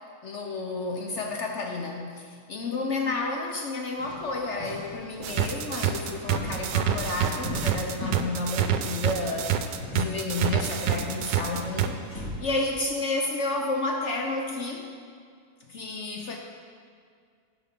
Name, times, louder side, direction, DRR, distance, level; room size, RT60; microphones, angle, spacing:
voice 1, 0.2-9.5 9.9-14.9 15.7-16.4, left 3 dB, 65° left, 2 dB, 0.7 m, -31 dB
sound 1, 4.0-12.4, equal, 5° left, 1.9 m, -39 dB
sound 2, 5.2-11.9, right 10 dB, 80° right, 1.2 m, -26 dB
12.0 x 4.6 x 5.8 m, 2.2 s
omnidirectional pair, 1.9 m